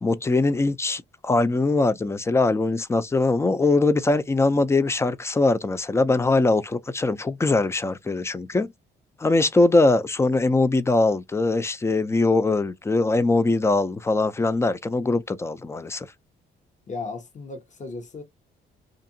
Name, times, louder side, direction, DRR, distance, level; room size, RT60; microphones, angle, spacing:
voice 1, 0.0-8.7 9.2-16.1, left 2 dB, 15° left, 0.4 m, -22 dB
voice 2, 16.9-18.2, left 3 dB, 35° left, 0.9 m, -35 dB
2.7 x 2.4 x 2.6 m
cardioid pair, 90°, 20 cm